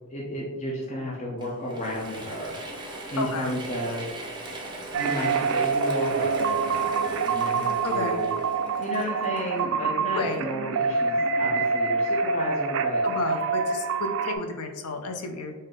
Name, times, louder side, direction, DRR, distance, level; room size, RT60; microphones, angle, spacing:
voice 1, 0.1-2.6 3.1-4.1 4.7-8.4 8.8-13.0, equal, 35° left, -4 dB, 0.6 m, -33 dB
Mechanisms / Drill, 1.4-10.0, right 2 dB, 20° right, 0.7 m, -40 dB
voice 2, 3.2-3.5 7.8-8.2 10.1-10.4 13.0-15.5, left 3 dB, 90° left, 5 dB, 0.6 m, -31 dB
sound 1, 4.9-14.3, right 4 dB, 65° right, 0.3 m, -26 dB
3.6 x 2.7 x 3.7 m, 1.3 s
head